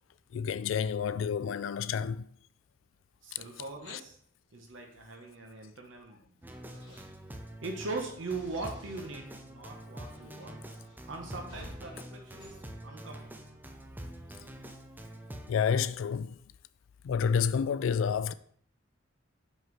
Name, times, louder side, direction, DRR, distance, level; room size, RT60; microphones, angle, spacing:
voice 1, 0.3-2.3 3.9-4.0 15.5-16.4 17.0-18.3, left 6 dB, 75° left, 0.3 m, -29 dB
voice 2, 3.2-4.2 4.5-7.0 7.6-10.6 11.1-13.6, right 3 dB, 75° right, 0.9 m, -41 dB
sound 1, 6.4-9.4 9.6-13.5, left 1 dB, 25° left, 2.4 m, -55 dB
sound 2, 6.4-15.5, right 1 dB, 10° right, 0.5 m, -46 dB
5.7 x 5.4 x 3.1 m
head